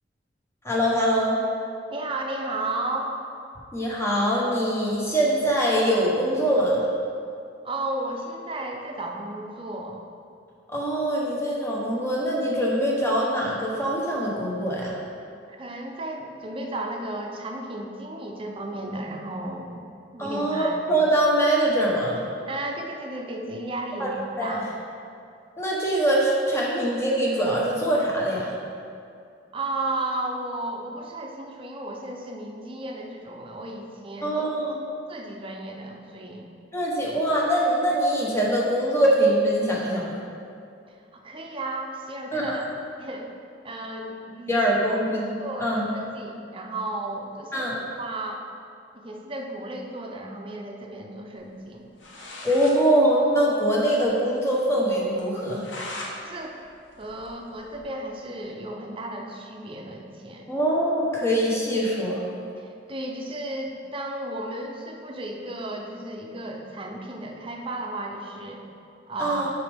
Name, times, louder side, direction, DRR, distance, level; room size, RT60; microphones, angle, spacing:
voice 1, 0.6-1.4 3.7-6.8 10.7-15.0 20.2-22.2 24.0-24.1 24.4-24.6 25.6-28.5 34.2-34.8 36.7-40.2 42.3-42.6 44.5-45.3 45.6-45.9 47.5-47.8 52.4-55.6 60.5-62.2 69.2-69.5, right 1 dB, 15° left, -4 dB, 1.0 m, -23 dB
voice 2, 1.9-3.1 7.6-10.0 15.5-19.8 20.1-20.9 22.5-24.7 29.5-34.4 35.1-36.5 41.1-42.6 43.0-43.3 43.6-44.6 44.9-45.0 45.4-47.7 48.0-48.4 48.9-51.9 56.2-56.6 57.0-60.5 62.6-68.6 69.1-69.5, right 2 dB, 30° right, 1 dB, 0.6 m, -34 dB
sound 1, 51.7-51.8 52.0-52.8 53.1-53.2 53.5-53.6 54.0-54.1 54.5-54.6 55.2-56.1 56.5-57.9, left 1 dB, 80° left, 1.0 m, -39 dB
6.9 x 5.1 x 3.5 m, 2.4 s
head